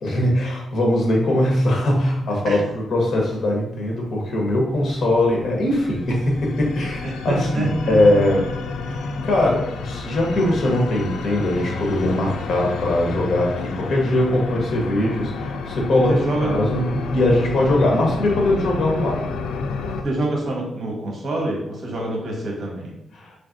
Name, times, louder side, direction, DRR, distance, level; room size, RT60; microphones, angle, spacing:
voice 1, 0.0-8.5 8.9-19.3 23.1-23.3, left 1 dB, 55° left, -1 dB, 1.2 m, -21 dB
sound 1, 4.7-20.0, left 3 dB, 90° left, 0.4 m, -30 dB
voice 2, 7.0-8.0 16.1-16.6 20.0-22.9, right 2 dB, 50° right, -1 dB, 1.3 m, -26 dB
4.2 x 3.3 x 2.6 m, 0.89 s
cardioid pair, 100°, 0 cm